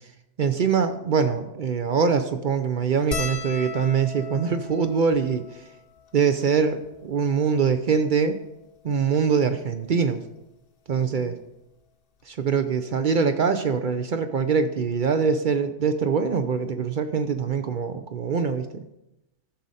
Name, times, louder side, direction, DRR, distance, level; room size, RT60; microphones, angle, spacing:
voice 1, 0.4-5.6 6.1-8.4 8.8-10.2 10.9-11.4 12.3-18.8, right 6 dB, 55° right, 9 dB, 0.5 m, -23 dB
sound 1, 3.1-7.7 8.5-8.6 8.8-9.0 10.2-10.4 11.9-12.0 12.2-12.4, left 5 dB, 50° left, 0.9 m, -38 dB
14.0 x 6.3 x 4.1 m, 0.90 s
omnidirectional pair, 1.4 m